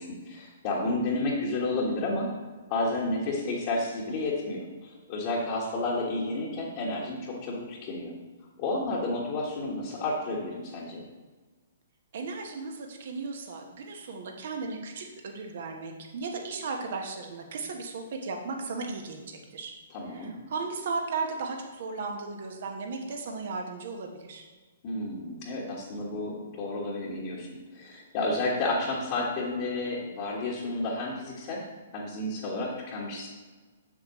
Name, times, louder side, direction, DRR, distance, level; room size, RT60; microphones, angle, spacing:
voice 1, 0.0-2.3 2.7-8.1 8.6-11.0 19.9-20.3 24.8-27.5 27.7-31.6 31.9-33.3, left 2 dB, 40° left, -4 dB, 1.4 m, -31 dB
voice 2, 12.1-19.7 20.1-24.4, right 4 dB, 55° right, 3 dB, 1.2 m, -36 dB
7.3 x 7.2 x 3.1 m, 1.3 s
figure-of-eight pair, 120°, 0 cm